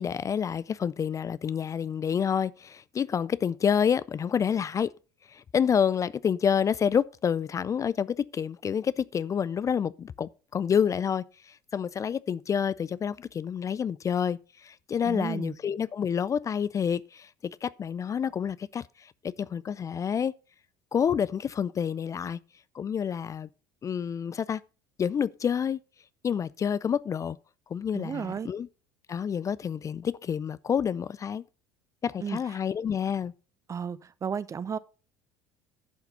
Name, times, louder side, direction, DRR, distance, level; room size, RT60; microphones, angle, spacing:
voice 1, 0.0-4.9 5.3-20.3 20.9-22.4 22.7-23.5 23.8-24.6 25.0-25.8 26.2-27.4 27.7-28.7 29.1-31.4 32.0-33.3, left 7 dB, 30° left, 0.4 m, -28 dB
voice 2, 15.1-15.5 27.9-28.5 32.2-32.4 33.7-34.8, right 7 dB, 30° right, 0.7 m, -33 dB
11.0 x 5.8 x 5.4 m
hypercardioid pair, 70°, 11 cm